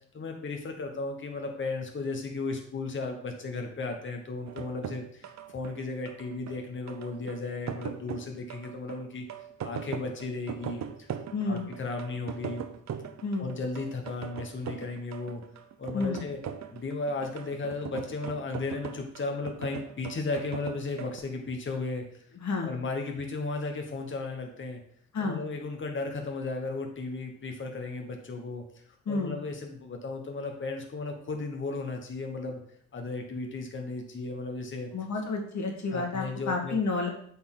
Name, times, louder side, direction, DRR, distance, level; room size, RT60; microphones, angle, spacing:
voice 1, 0.1-9.2 9.6-11.1 11.4-12.6 13.4-15.4 15.8-16.4 16.7-22.3 22.6-24.8 25.2-28.6 29.1-32.6 32.9-34.9 35.9-36.8, left 3 dB, 40° left, 3 dB, 1.2 m, -35 dB
sound 1, 4.5-21.2, right 8 dB, 60° right, 0.7 m, -40 dB
voice 2, 11.3-11.6 13.2-13.5 15.9-16.2 22.4-22.7 25.1-25.4 29.1-29.4 34.9-37.1, left 3 dB, 60° left, 1 dB, 1.7 m, -30 dB
8.1 x 4.3 x 3.9 m, 0.62 s
cardioid pair, 105°, 31 cm